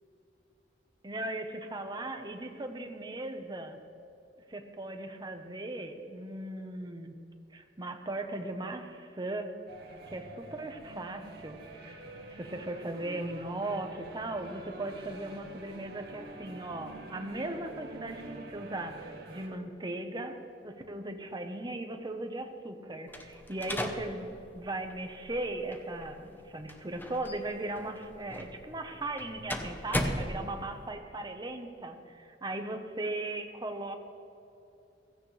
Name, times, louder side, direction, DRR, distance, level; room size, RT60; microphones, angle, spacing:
voice 1, 1.0-3.8 4.5-7.1 7.5-9.5 10.1-12.0 12.3-20.3 20.6-34.0, right 2 dB, 25° right, 5 dB, 1.1 m, -38 dB
sound 1, 9.7-19.5, right 2 dB, 60° right, 2.2 m, -47 dB
sound 2, 23.1-30.9, left 1 dB, 10° left, 0.9 m, -38 dB
16.0 x 16.0 x 3.3 m, 2.8 s
head